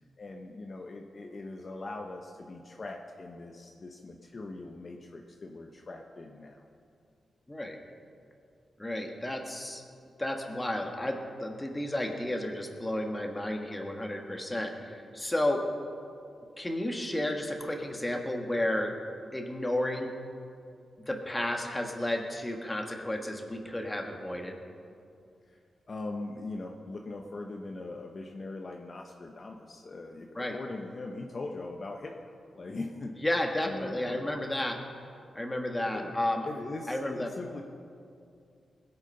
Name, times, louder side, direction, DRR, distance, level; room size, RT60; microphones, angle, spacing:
voice 1, 0.2-6.6 25.5-25.6 25.9-33.1 33.6-34.3 35.9-36.2 36.4-37.6, left 2 dB, 40° left, 2 dB, 0.9 m, -41 dB
voice 2, 7.5-7.8 8.8-9.8 10.2-15.6 16.6-18.9 19.3-20.1 21.1-24.6 30.3-30.6 33.2-34.8 35.3-36.5 36.9-37.3, left 1 dB, 15° left, 2 dB, 1.5 m, -32 dB
21.0 x 8.2 x 5.5 m, 2.4 s
wide cardioid pair, 120°, 0 cm